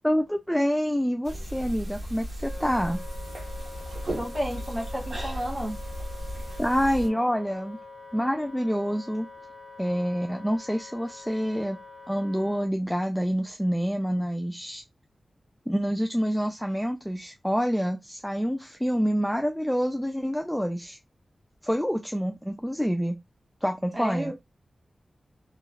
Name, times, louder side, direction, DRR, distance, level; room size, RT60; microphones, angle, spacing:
voice 1, 0.0-3.0 6.6-7.8 8.1-9.3 9.8-11.8 12.1-14.8 15.7-21.0 21.6-23.2 23.6-24.3, equal, 5° left, 0.3 m, -27 dB
sound 1, 1.2-7.1, equal, 55° right, 1.2 m, -35 dB
Wind instrument woodwind instrument, 2.4-12.7, left 3 dB, 50° left, 1.0 m, -45 dB
voice 2, 4.1-5.8 23.9-24.3, equal, 20° right, 1.2 m, -32 dB
3.1 x 2.3 x 2.2 m
wide cardioid pair, 105°, 0 cm